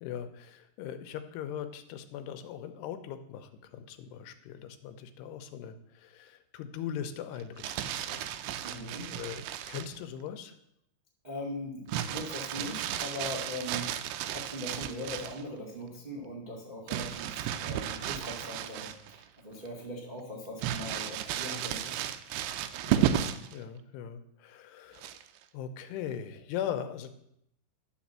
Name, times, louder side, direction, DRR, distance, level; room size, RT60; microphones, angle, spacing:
voice 1, 0.0-8.3 8.6-8.8 9.1-10.5 22.8-25.2 25.5-27.1, left 9 dB, 90° left, 9 dB, 2.9 m, -40 dB
Crumpling crinkling, 7.4-10.0 11.9-15.4 16.9-19.2 19.7-19.8 20.6-23.5 25.0-25.4, right 11 dB, 85° right, 2.7 m, -33 dB
voice 2, 8.6-9.1 11.2-13.9 14.3-22.1, left 1 dB, 65° right, -3 dB, 0.4 m, -40 dB
11.5 x 5.3 x 7.3 m, 0.76 s
omnidirectional pair, 4.7 m